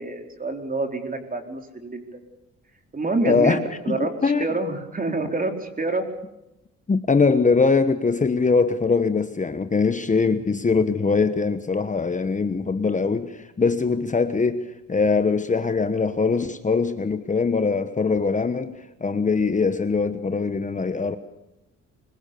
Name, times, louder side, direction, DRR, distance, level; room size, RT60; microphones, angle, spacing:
voice 1, 0.0-2.1 2.9-3.6 3.8-6.0, right 3 dB, 30° right, 4.3 m, -27 dB
voice 2, 3.2-3.6 3.9-4.5 6.9-21.2, left 4 dB, 25° left, 1.2 m, -22 dB
24.5 x 22.0 x 7.0 m
cardioid pair, 90°, 30 cm